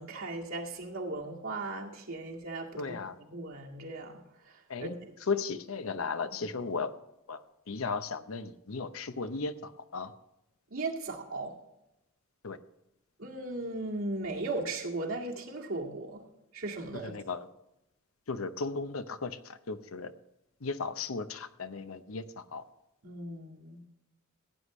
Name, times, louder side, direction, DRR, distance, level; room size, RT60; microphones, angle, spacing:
voice 1, 0.0-3.0 3.3-5.0 6.3-6.4 10.7-11.5 13.2-16.2 16.5-17.2 23.0-23.8, right 2 dB, 75° right, -1 dB, 2.1 m, -37 dB
voice 2, 2.8-3.2 4.7-5.0 5.2-6.9 7.3-7.4 7.7-10.1 12.4-12.6 16.9-17.5 18.3-20.1 20.6-22.6, left 4 dB, 90° left, 11 dB, 0.8 m, -35 dB
16.0 x 9.8 x 3.2 m, 0.89 s
head